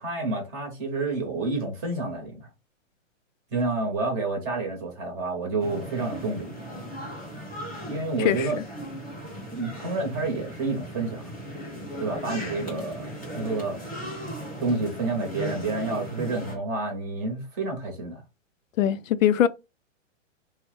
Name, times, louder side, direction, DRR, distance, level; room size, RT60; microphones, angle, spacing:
voice 1, 0.0-2.5 3.5-6.5 7.9-8.6 9.5-11.3 12.0-13.8 14.6-18.2, right 3 dB, 20° right, 0.8 m, -29 dB
sound 1, 5.6-16.6, equal, 5° left, 0.4 m, -37 dB
voice 2, 8.2-8.6 12.7-12.8 18.8-19.5, left 10 dB, 80° left, 0.5 m, -22 dB
3.1 x 2.1 x 3.0 m
hypercardioid pair, 155°, 38 cm